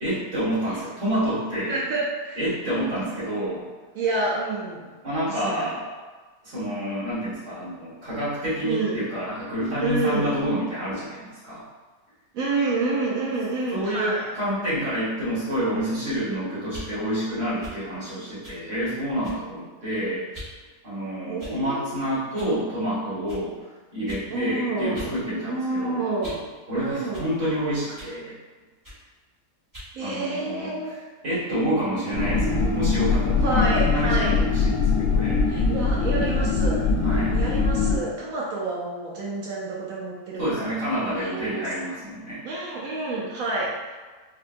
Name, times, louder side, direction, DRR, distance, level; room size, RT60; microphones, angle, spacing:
voice 1, 0.0-1.8 2.4-3.7 5.0-5.9 6.4-11.6 13.7-20.2 20.8-23.5 23.9-26.0 26.7-28.4 30.0-30.7 31.2-35.4 37.0-37.3 40.4-42.4, equal, 50° right, -10 dB, 1.8 m, -28 dB
voice 2, 1.6-2.4 3.0-3.2 3.9-4.9 5.3-5.7 8.6-9.1 9.8-10.4 12.3-14.3 21.2-22.0 24.3-25.1 25.5-26.5 26.7-27.3 29.9-31.0 33.4-34.4 35.5-36.8 37.3-40.8 41.1-41.7 42.4-43.9, right 2 dB, 70° right, -4 dB, 0.9 m, -28 dB
sound 1, 16.6-16.9 17.6-17.8 18.4-18.6 19.2-19.5 20.3-20.5 21.4-21.8 22.3-22.5 23.3-23.4 24.1-24.3 24.9-25.1 25.5-26.5 27.1-27.3 27.9-28.2 28.8-29.0 29.7-29.9, equal, 15° right, 0.8 m, -41 dB
sound 2, 32.1-38.0, left 4 dB, 80° left, 1.2 m, -22 dB
4.5 x 2.2 x 2.5 m, 1.3 s
omnidirectional pair, 1.7 m